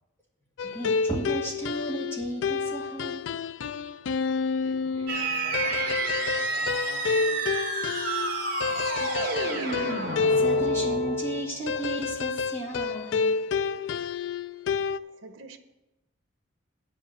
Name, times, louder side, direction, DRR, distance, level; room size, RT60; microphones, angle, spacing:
sound 1, 0.6-15.0, left 5 dB, 70° left, 0.3 m, -29 dB
voice 1, 0.6-3.2 8.7-9.5 10.4-13.3, right 1 dB, 10° left, 2.0 m, -34 dB
voice 2, 4.5-7.4, right 2 dB, 30° left, 3.7 m, -47 dB
sound 2, 5.1-11.6, right 3 dB, 45° right, 2.1 m, -30 dB
voice 3, 14.6-15.6, right 3 dB, 80° right, 0.9 m, -49 dB
9.3 x 5.4 x 7.6 m
head